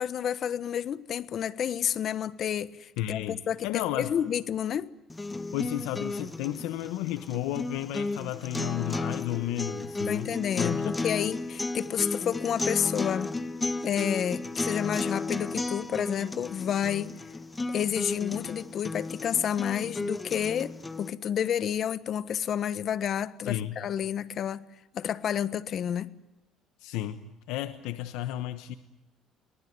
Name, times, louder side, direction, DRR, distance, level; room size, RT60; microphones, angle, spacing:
voice 1, 0.0-4.9 10.1-13.3 13.8-17.1 17.7-24.7 24.9-26.1, left 9 dB, 50° left, 1.2 m, -30 dB
voice 2, 3.0-4.1 5.5-10.9 23.4-23.8 26.8-28.7, left 14 dB, 85° left, 1.2 m, -33 dB
sound 1, 5.1-21.1, left 3 dB, 15° left, 1.3 m, -34 dB
23.5 x 18.5 x 9.6 m
cardioid pair, 110°, 0 cm